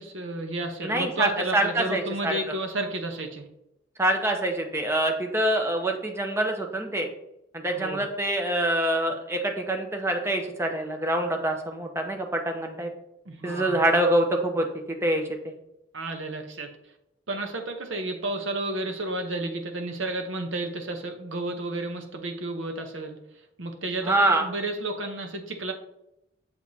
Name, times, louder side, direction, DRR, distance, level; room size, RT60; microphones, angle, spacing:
voice 1, 0.0-3.4 7.7-8.1 13.3-13.8 15.9-16.7 17.3-23.2 23.6-25.7, right 2 dB, 75° right, 5 dB, 0.9 m, -32 dB
voice 2, 0.8-2.6 4.0-7.1 7.5-12.9 13.4-15.2 24.0-24.4, right 1 dB, 15° right, 3 dB, 0.7 m, -25 dB
7.0 x 4.8 x 2.8 m, 0.84 s
head